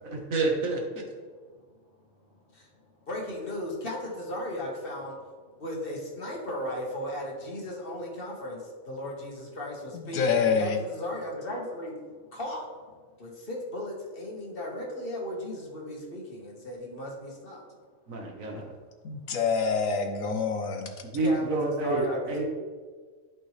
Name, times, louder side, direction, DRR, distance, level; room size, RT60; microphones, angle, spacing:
voice 1, 0.0-0.8 18.1-18.7 21.1-22.4, right 3 dB, 75° right, 1 dB, 1.7 m, -28 dB
voice 2, 3.1-5.2 5.6-11.9 12.3-12.9 13.2-17.6 21.2-22.5, left 1 dB, 40° left, -2 dB, 1.7 m, -36 dB
voice 3, 9.9-10.8 19.0-20.9, left 5 dB, 90° left, 4 dB, 1.4 m, -26 dB
11.5 x 5.3 x 3.3 m, 1.5 s
omnidirectional pair, 1.4 m